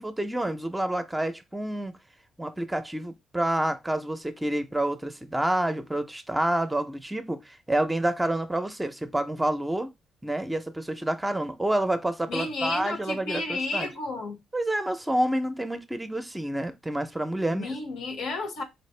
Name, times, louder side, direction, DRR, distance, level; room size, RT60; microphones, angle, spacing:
voice 1, 0.0-1.9 2.4-9.9 10.2-13.9 14.5-17.7, right 1 dB, 10° right, 0.6 m, -28 dB
voice 2, 12.3-14.4 17.5-18.6, left 3 dB, 75° left, 1.1 m, -32 dB
4.2 x 2.5 x 3.2 m
cardioid pair, 90°, 0 cm